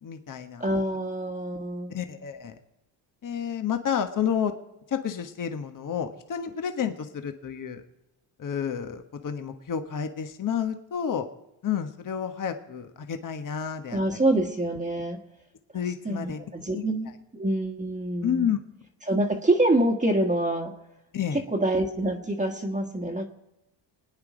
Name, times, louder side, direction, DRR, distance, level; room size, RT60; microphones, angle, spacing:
voice 1, 0.0-0.6 1.9-2.6 3.2-4.5 4.9-7.8 8.4-11.3 11.6-14.0 15.7-16.4 16.7-16.8 18.2-18.6 21.1-21.4, left 8 dB, 40° left, 7 dB, 1.3 m, -30 dB
voice 2, 0.6-1.9 13.9-15.2 16.0-18.5 19.0-20.7 21.3-23.3, right 1 dB, 15° right, 3 dB, 1.5 m, -26 dB
26.0 x 9.7 x 5.1 m, 0.92 s
cardioid pair, 120°, 48 cm